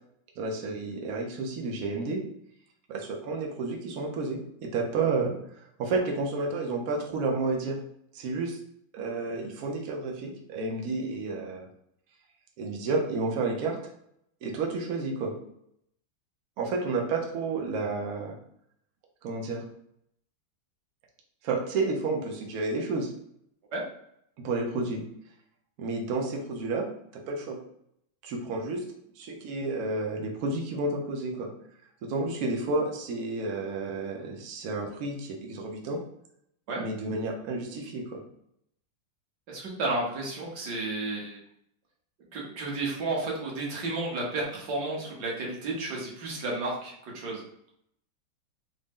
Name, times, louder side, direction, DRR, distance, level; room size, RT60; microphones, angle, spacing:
voice 1, 0.4-2.2 2.9-5.3 5.8-7.8 8.1-8.6 8.9-11.7 12.6-13.8 14.4-15.4 16.6-18.3 19.2-19.6 21.4-23.1 24.4-25.0 25.8-26.9 27.1-27.6 28.2-28.8 29.2-31.5 32.0-36.0 36.8-38.2, right 3 dB, 90° right, 0 dB, 0.8 m, -31 dB
voice 2, 39.5-41.4 42.3-47.4, right 2 dB, 60° right, -3 dB, 1.4 m, -32 dB
3.9 x 2.0 x 3.5 m, 0.72 s
omnidirectional pair, 2.4 m